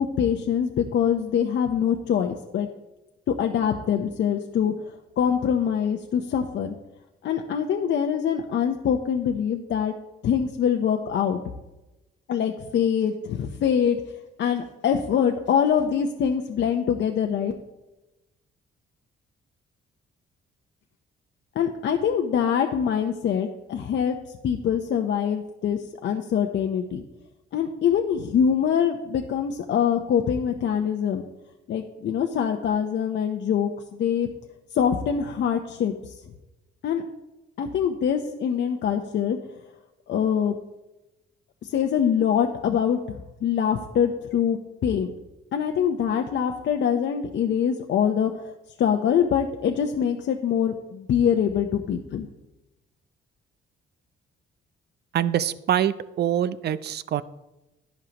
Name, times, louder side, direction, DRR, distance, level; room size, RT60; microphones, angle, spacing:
voice 1, 0.0-2.7 3.3-4.7 5.2-6.8 7.2-9.9 10.2-11.4 12.3-14.0 14.4-17.5 21.6-24.2 24.4-27.0 27.5-31.2 31.7-34.3 34.7-35.9 36.8-37.0 37.6-39.4 40.1-40.6 41.6-43.0 43.4-45.1 45.5-48.3 48.8-52.3, left 8 dB, 65° left, 4 dB, 0.9 m, -24 dB
voice 2, 55.1-57.2, right 10 dB, 55° right, 15 dB, 0.5 m, -24 dB
12.0 x 11.0 x 3.0 m, 1.0 s
cardioid pair, 90°, 20 cm